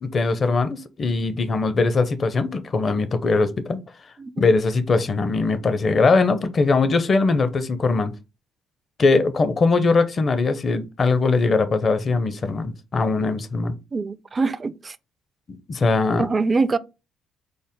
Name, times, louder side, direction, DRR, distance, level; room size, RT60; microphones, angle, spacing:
voice 1, 0.0-3.8 4.4-8.1 9.0-13.7 15.5-16.3, left 3 dB, 45° left, 0.6 m, -21 dB
voice 2, 13.9-15.0 16.2-16.8, right 4 dB, 35° right, 0.3 m, -23 dB
5.2 x 2.1 x 3.6 m
hypercardioid pair, 55°, 0 cm